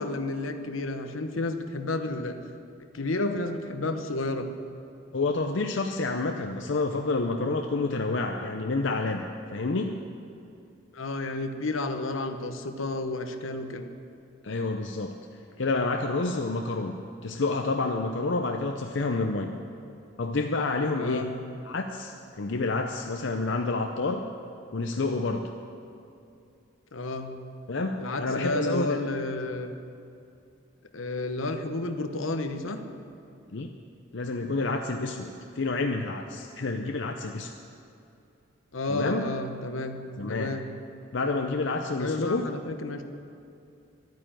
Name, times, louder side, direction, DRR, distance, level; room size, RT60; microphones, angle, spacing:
voice 1, 0.0-2.4 2.9-4.5 10.9-13.9 21.0-21.3 26.9-27.3 28.0-29.7 30.9-32.8 38.7-40.0 40.3-40.7 42.0-43.0, left 2 dB, 80° left, 7 dB, 1.0 m, -31 dB
voice 2, 5.1-9.2 9.5-10.0 14.4-15.1 15.6-17.0 17.2-19.5 20.2-21.3 21.6-24.2 24.7-25.4 27.7-29.0 33.5-33.7 34.1-37.5 38.9-39.3 40.2-40.5 41.1-42.5, left 3 dB, 65° left, 4 dB, 0.6 m, -28 dB
12.5 x 9.2 x 9.0 m, 2.6 s
head